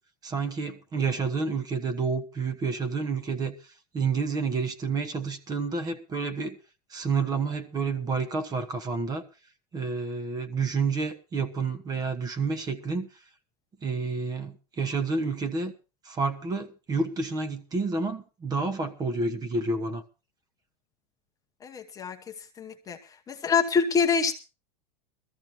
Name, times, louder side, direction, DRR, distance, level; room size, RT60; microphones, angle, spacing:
voice 1, 0.2-6.6 6.9-9.2 9.7-13.1 13.8-15.7 16.0-20.0, right 4 dB, 20° right, 1.1 m, -29 dB
voice 2, 21.6-22.2 22.6-23.0 23.3-24.4, left 5 dB, 15° left, 1.0 m, -25 dB
21.0 x 14.0 x 2.9 m
supercardioid pair, 150°, 20 cm